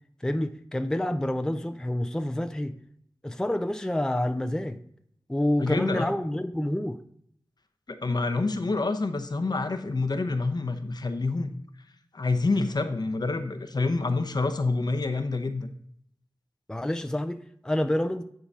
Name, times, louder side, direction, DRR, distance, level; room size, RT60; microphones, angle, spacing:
voice 1, 0.2-2.7 3.2-4.8 5.3-7.0 16.7-18.2, left 1 dB, 10° left, 8 dB, 0.5 m, -28 dB
voice 2, 5.6-6.1 7.9-11.5 12.1-15.7, left 3 dB, 55° left, 8 dB, 0.8 m, -27 dB
9.8 x 3.8 x 5.4 m, 0.68 s
wide cardioid pair, 60°, 9 cm